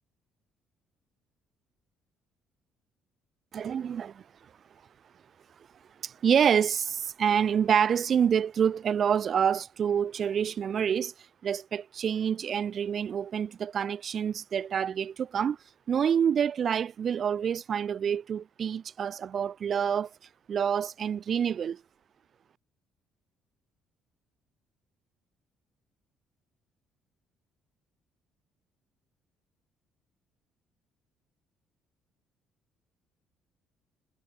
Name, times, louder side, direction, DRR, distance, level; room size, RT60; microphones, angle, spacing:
voice 1, 3.5-4.2 6.0-11.1 11.4-15.6 15.9-20.1 20.5-21.8, right 8 dB, 45° right, 3.5 m, -27 dB
figure-of-eight pair, 45°, 0 cm